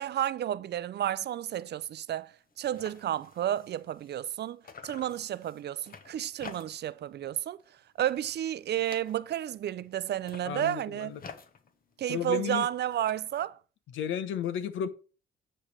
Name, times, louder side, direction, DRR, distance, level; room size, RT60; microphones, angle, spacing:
voice 1, 0.0-7.6 8.0-11.1 12.0-13.6, right 11 dB, 60° right, 0.5 m, -32 dB
sound 1, 1.5-1.7 2.1-2.2 2.4-4.4 4.6-7.0 7.3-7.7 8.0-9.5 10.1-13.1, left 6 dB, 45° left, 1.2 m, -51 dB
voice 2, 10.4-11.2 12.1-12.7 13.9-14.9, left 9 dB, 80° left, 1.0 m, -33 dB
9.9 x 3.4 x 6.4 m
cardioid pair, 90°, 20 cm